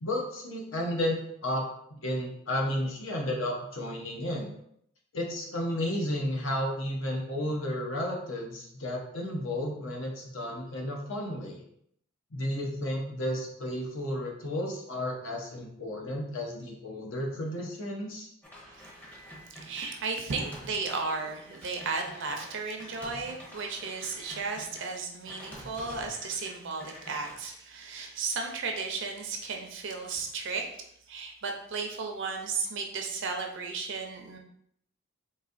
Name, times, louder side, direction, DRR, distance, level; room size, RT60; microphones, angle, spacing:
voice 1, 0.0-4.5 5.1-11.6 12.3-18.3, left 1 dB, 65° left, -1 dB, 0.8 m, -32 dB
sound 1, 18.4-24.8 25.3-26.5 26.8-27.4, equal, 5° left, 0.7 m, -48 dB
voice 2, 19.6-30.7 31.1-34.4, right 4 dB, 60° right, 3 dB, 0.6 m, -34 dB
3.9 x 2.6 x 2.5 m, 0.70 s
head